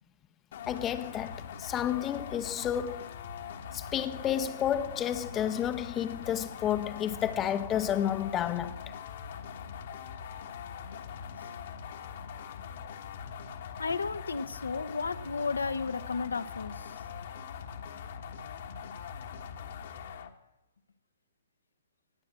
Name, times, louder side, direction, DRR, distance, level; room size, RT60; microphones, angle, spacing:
sound 1, 0.5-20.3, left 7 dB, 50° left, 1.3 m, -42 dB
voice 1, 0.7-3.1 3.7-8.8, left 10 dB, 20° left, 0.8 m, -31 dB
voice 2, 13.8-16.9, left 4 dB, 65° left, 0.9 m, -33 dB
19.0 x 8.7 x 7.6 m
figure-of-eight pair, 120°, 0 cm